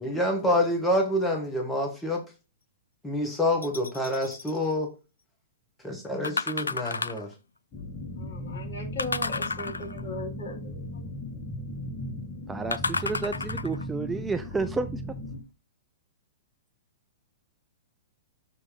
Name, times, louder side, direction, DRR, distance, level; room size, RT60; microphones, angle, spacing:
voice 1, 0.0-2.2 3.0-4.9 5.8-7.3, left 1 dB, 10° left, 1.4 m, -27 dB
sound 1, 3.6-4.6 6.2-7.3 9.0-10.1 12.7-13.9 14.5-14.6, left 4 dB, 85° left, 0.4 m, -32 dB
sound 2, 7.7-15.4, equal, 25° left, 1.3 m, -37 dB
voice 2, 8.2-11.0, left 2 dB, 60° left, 4.3 m, -38 dB
voice 3, 12.5-15.2, right 4 dB, 10° right, 0.5 m, -31 dB
7.1 x 3.2 x 5.1 m
figure-of-eight pair, 110°, 0 cm